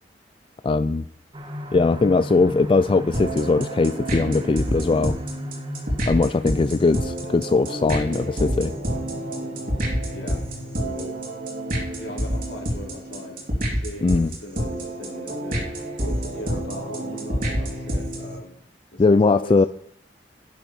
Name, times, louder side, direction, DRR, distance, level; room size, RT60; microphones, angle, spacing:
voice 1, 0.6-1.0 1.7-5.2 6.1-8.7 14.0-14.3 19.0-19.7, left 3 dB, 30° left, 13 dB, 0.3 m, -20 dB
sound 1, 1.3-14.8 15.3-15.4 15.8-15.9, equal, 30° right, 1.4 m, -38 dB
sound 2, 3.1-18.4, equal, 50° right, 2.8 m, -28 dB
voice 2, 10.0-10.4 10.8-11.1 11.9-15.7 16.0-18.5 18.9-19.7, left 1 dB, 75° left, 0 dB, 3.3 m, -39 dB
10.5 x 6.8 x 6.4 m, 0.65 s
head